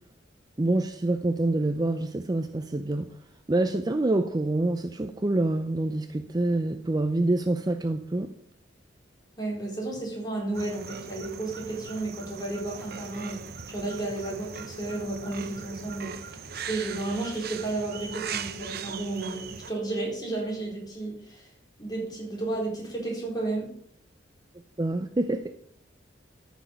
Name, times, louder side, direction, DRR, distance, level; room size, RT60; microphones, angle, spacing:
voice 1, 0.6-3.1 3.5-8.3 24.8-25.6, right 2 dB, 20° right, 0.5 m, -26 dB
voice 2, 9.4-21.5 21.8-23.7, right 2 dB, 20° left, 4.1 m, -33 dB
sound 1, 10.5-19.7, right 6 dB, 55° right, 0.8 m, -39 dB
14.0 x 6.3 x 5.3 m
head